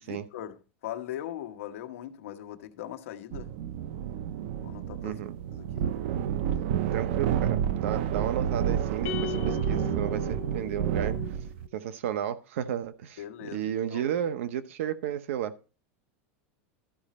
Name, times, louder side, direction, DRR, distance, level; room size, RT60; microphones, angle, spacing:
voice 1, 0.0-3.5 4.6-5.2 5.5-6.0 13.2-14.0, left 11 dB, 85° left, 1.1 m, -40 dB
sound 1, 3.3-11.7, right 9 dB, 55° right, 0.6 m, -30 dB
voice 2, 5.0-5.4 6.9-11.2 11.7-15.5, right 10 dB, 75° right, 0.9 m, -33 dB
sound 2, 9.0-11.5, left 16 dB, 40° left, 0.7 m, -38 dB
13.0 x 5.0 x 4.2 m
supercardioid pair, 175°, 7 cm